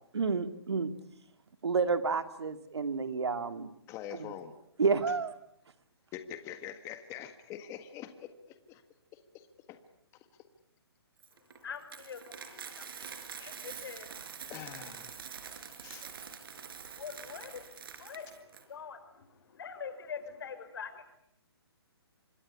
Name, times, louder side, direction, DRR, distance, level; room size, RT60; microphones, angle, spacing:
voice 1, 0.1-0.9 1.6-3.7 4.2-4.3 4.8-5.3, right 4 dB, 85° right, 10 dB, 2.5 m, -30 dB
voice 2, 3.9-4.5 6.1-8.8 9.1-9.8 14.5-15.2 15.8-16.0, left 10 dB, 20° left, 9 dB, 1.7 m, -44 dB
Coin (dropping), 11.2-18.6, right 7 dB, 60° right, 4.6 m, -46 dB
voice 3, 11.6-14.1 16.5-16.7 17.0-17.7 18.0-21.0, left 6 dB, 60° left, 10 dB, 5.3 m, -44 dB
26.0 x 22.5 x 9.8 m, 0.76 s
hypercardioid pair, 150°, 14 cm